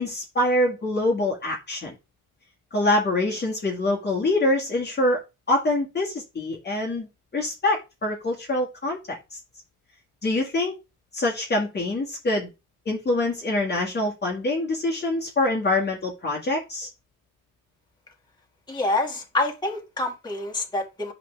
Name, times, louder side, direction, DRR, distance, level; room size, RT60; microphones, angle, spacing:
voice 1, 0.0-1.9 2.7-5.2 5.5-7.1 7.3-9.2 10.2-10.7 11.1-12.5 12.9-16.9, left 2 dB, 35° left, 1.9 m, -25 dB
voice 2, 18.7-21.1, left 2 dB, 15° left, 2.1 m, -27 dB
7.8 x 5.0 x 3.4 m
cardioid pair, 90°, 30 cm